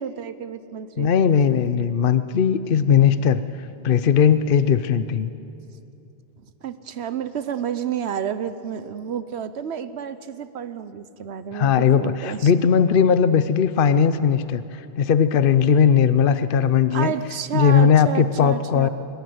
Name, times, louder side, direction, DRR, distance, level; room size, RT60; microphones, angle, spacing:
voice 1, 0.0-1.1 6.6-12.5 16.9-18.9, right 8 dB, 85° right, 12 dB, 1.1 m, -30 dB
voice 2, 1.0-5.3 11.5-17.1 17.5-18.9, left 7 dB, 60° left, 13 dB, 0.9 m, -18 dB
22.5 x 20.0 x 9.4 m, 2.7 s
omnidirectional pair, 1.1 m